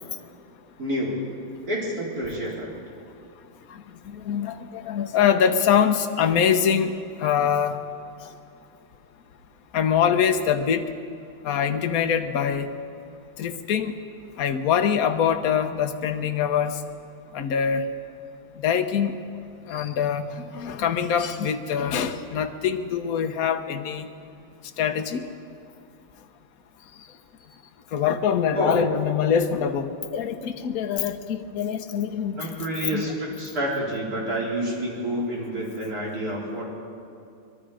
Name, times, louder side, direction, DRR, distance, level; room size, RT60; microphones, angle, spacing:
voice 1, 0.8-1.2 1.7-2.7 28.5-28.8 32.4-36.7, equal, 40° right, -4 dB, 4.8 m, -28 dB
voice 2, 3.5-7.8 8.2-8.4 9.7-10.9 11.4-12.7 13.4-14.0 14.4-16.9 17.3-17.9 18.5-19.2 19.6-24.1 24.8-25.3 26.8-27.2 27.5-27.6 27.9-32.5 32.9-33.1, left 8 dB, 50° left, 7 dB, 1.3 m, -24 dB
23.0 x 22.0 x 5.1 m, 2.5 s
omnidirectional pair, 2.4 m